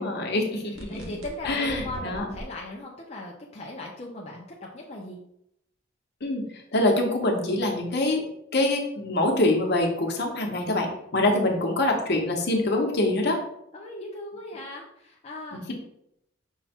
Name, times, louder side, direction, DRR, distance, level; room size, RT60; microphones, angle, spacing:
voice 1, 0.0-1.0 1.4-2.2 6.2-6.5 6.7-8.3 8.5-13.4, left 2 dB, 55° left, 2 dB, 0.9 m, -25 dB
sound 1, 0.8-2.4, equal, 90° right, 1.0 m, -40 dB
voice 2, 0.9-5.2 11.5-11.6 13.7-15.6, left 1 dB, 35° left, -2 dB, 0.5 m, -38 dB
5.5 x 2.2 x 4.3 m, 0.78 s
head